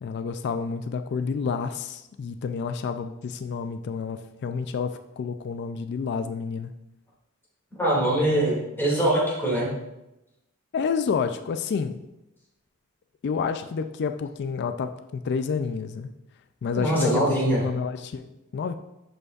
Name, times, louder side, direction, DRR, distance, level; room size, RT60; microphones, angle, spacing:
voice 1, 0.0-6.7 10.7-12.0 13.2-16.1 16.6-18.7, left 5 dB, 50° left, 8 dB, 0.3 m, -29 dB
voice 2, 7.8-9.7 16.8-17.6, right 1 dB, 10° left, -5 dB, 2.2 m, -23 dB
10.5 x 5.2 x 2.4 m, 0.93 s
head